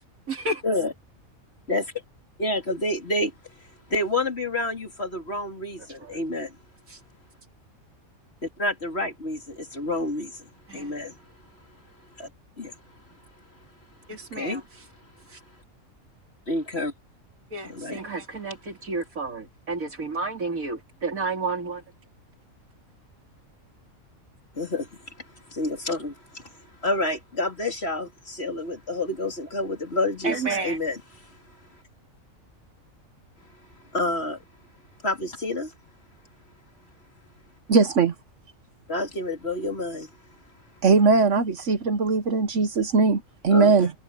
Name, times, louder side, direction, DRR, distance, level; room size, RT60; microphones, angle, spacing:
voice 1, 0.3-0.6 10.7-10.9 14.1-14.6 17.5-21.8 30.2-30.8, right 3 dB, 85° right, 3.5 m, -31 dB
voice 2, 2.4-3.3 3.9-6.6 8.4-11.2 12.2-12.3 12.6-12.8 14.1-14.6 16.5-16.9 17.6-18.0 24.5-31.4 33.9-34.4 35.0-35.7 38.9-40.1 43.5-43.7, left 2 dB, 50° left, 3.8 m, -29 dB
voice 3, 37.7-38.1 40.8-43.9, right 4 dB, 65° right, 1.3 m, -20 dB
omnidirectional pair, 1.4 m